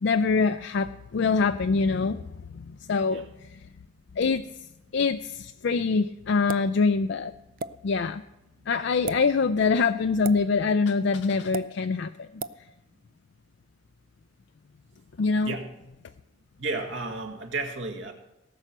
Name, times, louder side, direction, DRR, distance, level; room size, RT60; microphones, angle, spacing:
voice 1, 0.0-2.2 2.5-3.6 4.2-4.5 4.9-7.3 7.8-8.2 8.7-12.3 15.2-15.5, left 4 dB, 60° left, 9 dB, 0.4 m, -24 dB
sound 1, 6.5-6.7 7.6-7.7 8.9-9.2 10.2-10.4 11.5-11.7 12.4-12.6, right 3 dB, 45° right, 0.4 m, -33 dB
voice 2, 16.6-18.1, right 3 dB, 65° right, 4 dB, 1.9 m, -32 dB
18.0 x 7.9 x 6.1 m, 0.93 s
head